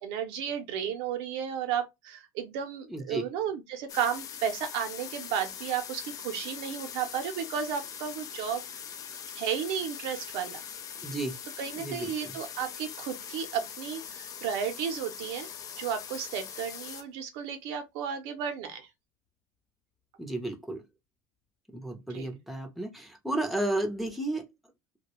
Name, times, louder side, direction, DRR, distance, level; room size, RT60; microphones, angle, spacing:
voice 1, 0.0-8.6 9.4-10.6 11.6-15.5 15.8-18.9 22.1-22.3, right 8 dB, 75° right, 0.6 m, -33 dB
voice 2, 2.9-3.3 6.7-6.8 11.0-11.4 11.8-12.4 20.2-20.8 21.7-24.5, right 1 dB, ahead, 0.6 m, -33 dB
sound 1, 3.9-17.0, left 8 dB, 40° left, 0.4 m, -42 dB
2.3 x 2.1 x 2.9 m
supercardioid pair, 110°, 9 cm